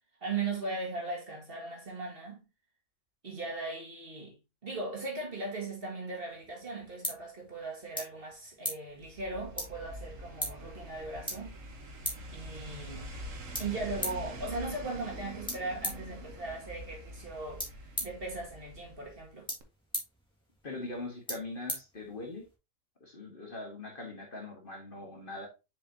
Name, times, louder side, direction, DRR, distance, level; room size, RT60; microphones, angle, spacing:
voice 1, 0.2-2.4 3.2-4.4 4.6-11.6 12.3-13.1 13.6-17.6 18.0-19.5, right 3 dB, 45° right, 2.1 m, -38 dB
sound 1, 6.3-22.5, equal, 5° left, 1.8 m, -43 dB
sound 2, 9.0-19.3 19.6-19.7, right 1 dB, 70° right, 1.5 m, -45 dB
voice 2, 20.6-22.4 23.0-25.5, left 2 dB, 40° left, 1.6 m, -41 dB
6.7 x 5.3 x 2.7 m
omnidirectional pair, 1.4 m